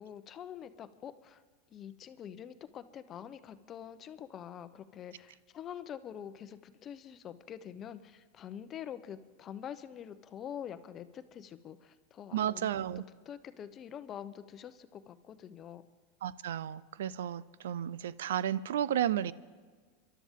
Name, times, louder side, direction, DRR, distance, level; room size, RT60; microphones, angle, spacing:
voice 1, 0.0-1.4 1.7-15.8, left 9 dB, 35° left, 11 dB, 0.7 m, -46 dB
voice 2, 12.3-13.0 16.2-19.3, right 10 dB, 85° right, 19 dB, 0.4 m, -33 dB
27.5 x 12.0 x 3.7 m, 1.5 s
supercardioid pair, 125°, 0 cm